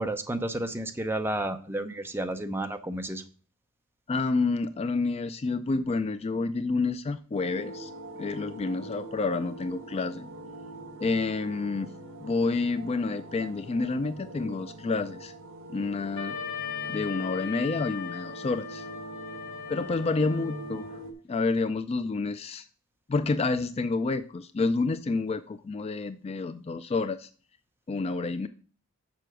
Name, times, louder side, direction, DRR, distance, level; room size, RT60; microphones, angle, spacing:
voice 1, 0.0-3.2, right 1 dB, 10° right, 7 dB, 0.7 m, -31 dB
voice 2, 4.1-7.9 8.2-10.3 11.0-11.9 12.2-15.3 15.7-16.4 16.9-18.9 19.7-21.0 21.3-22.6 23.1-27.3 27.9-28.5, left 3 dB, 30° left, 12 dB, 0.3 m, -29 dB
sound 1, 7.3-21.1, right 1 dB, 60° right, 1.5 m, -43 dB
Wind instrument woodwind instrument, 16.2-21.0, left 7 dB, 60° left, 1.3 m, -38 dB
6.8 x 6.0 x 6.1 m, 0.40 s
head